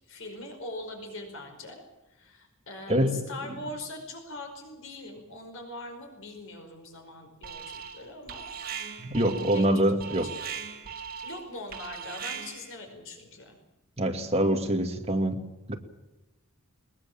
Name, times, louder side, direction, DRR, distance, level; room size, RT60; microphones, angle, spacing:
voice 1, 0.1-1.8 2.1-10.6 11.2-13.6, left 2 dB, 65° left, 4 dB, 5.1 m, -42 dB
voice 2, 2.9-3.6 9.0-10.3 14.0-15.4 15.7-15.8, right 1 dB, 30° right, 4 dB, 2.3 m, -25 dB
Alarm, 7.4-8.0 8.3-12.7, right 7 dB, 45° right, 3.2 m, -39 dB
21.5 x 21.0 x 7.5 m, 1.0 s
head